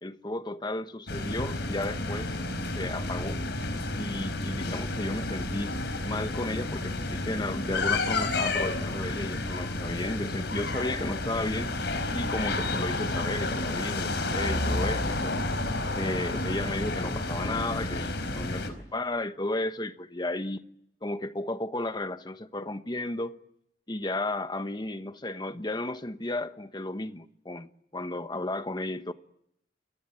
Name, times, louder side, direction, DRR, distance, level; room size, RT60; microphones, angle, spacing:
voice 1, 0.0-2.4 2.8-3.4 4.0-5.8 6.0-11.7 12.1-15.4 15.9-20.6 21.0-23.4 23.9-29.1, left 2 dB, 25° left, 1.2 m, -33 dB
sound 1, 1.1-18.7, left 2 dB, 75° left, 4.6 m, -31 dB
29.0 x 23.0 x 7.7 m
head